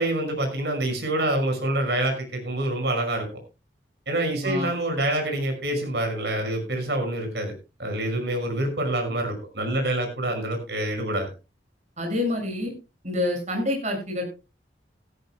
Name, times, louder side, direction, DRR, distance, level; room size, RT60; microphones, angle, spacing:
voice 1, 0.0-3.3 4.1-7.5 7.8-11.3, right 1 dB, 65° right, 4 dB, 5.8 m, -26 dB
voice 2, 12.0-12.7 13.0-14.2, left 1 dB, 40° right, 4 dB, 6.4 m, -27 dB
16.5 x 16.0 x 2.2 m, 0.30 s
head